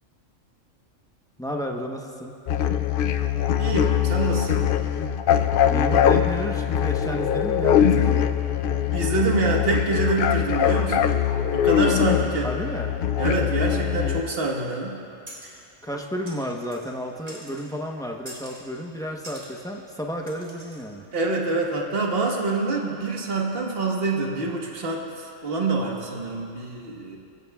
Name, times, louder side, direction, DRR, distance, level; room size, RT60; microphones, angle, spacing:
voice 1, 1.4-2.3 5.7-8.3 12.4-12.9 14.0-14.2 15.8-21.0, equal, 5° left, 0 dB, 0.8 m, -32 dB
sound 1, 2.5-14.2, left 9 dB, 60° left, 0.6 m, -22 dB
voice 2, 3.6-4.7 8.9-11.1 11.5-12.5 13.2-15.0 15.4-15.5 21.1-27.2, right 3 dB, 50° right, -1 dB, 1.6 m, -26 dB
sound 2, 15.3-15.6 16.3-17.0 17.3-17.7 18.3-18.7 19.2-19.5 20.3-20.9, right 1 dB, 30° right, 2.1 m, -44 dB
21.5 x 16.0 x 2.4 m, 2.5 s
omnidirectional pair, 1.3 m